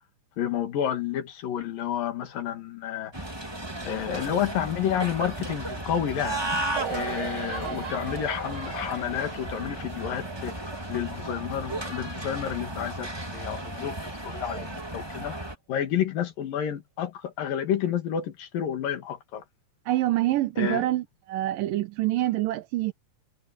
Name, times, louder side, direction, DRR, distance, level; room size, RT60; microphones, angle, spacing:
voice 1, 0.4-3.1 3.8-6.4 6.9-10.6 10.9-14.0 14.2-19.4 20.6-20.9, left 9 dB, 85° left, 3.8 m, -30 dB
sound 1, 3.1-15.5, right 1 dB, 10° right, 1.6 m, -34 dB
sound 2, 6.8-13.4 13.7-13.8, right 7 dB, 35° right, 6.8 m, -40 dB
voice 2, 19.9-22.9, right 15 dB, 85° right, 2.6 m, -26 dB
omnidirectional pair, 3.9 m